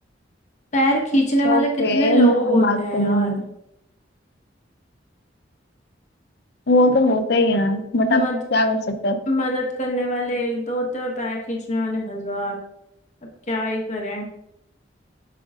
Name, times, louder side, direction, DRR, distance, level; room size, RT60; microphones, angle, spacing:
voice 1, 0.7-3.4 8.1-8.4 9.3-12.6 13.5-14.2, equal, 40° left, -1 dB, 1.2 m, -23 dB
voice 2, 1.4-3.4 6.7-8.2 8.5-9.2, left 1 dB, 60° left, 8 dB, 0.6 m, -20 dB
7.7 x 6.1 x 2.5 m, 0.80 s
head